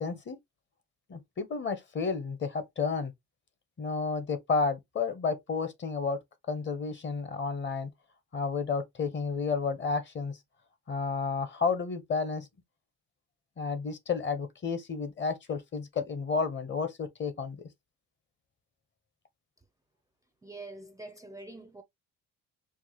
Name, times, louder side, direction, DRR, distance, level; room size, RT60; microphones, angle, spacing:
voice 1, 0.0-0.4 1.1-3.1 3.8-6.2 6.5-7.9 8.3-10.4 10.9-12.5 13.6-17.6, left 5 dB, 35° left, 0.8 m, -31 dB
voice 2, 20.4-21.8, right 2 dB, 10° right, 0.4 m, -45 dB
4.5 x 2.1 x 2.9 m
cardioid pair, 120°, 32 cm